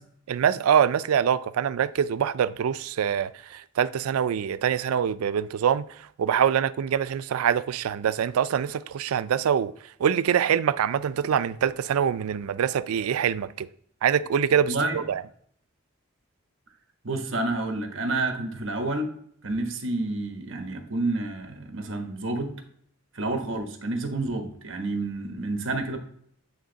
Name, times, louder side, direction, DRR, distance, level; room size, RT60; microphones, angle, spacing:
voice 1, 0.3-9.7 10.0-13.7 14.0-15.2, right 8 dB, 90° right, 0.3 m, -24 dB
voice 2, 14.7-15.0 17.0-19.1 19.4-22.5 23.1-26.0, right 2 dB, 60° right, 1.2 m, -29 dB
8.7 x 3.5 x 3.9 m
head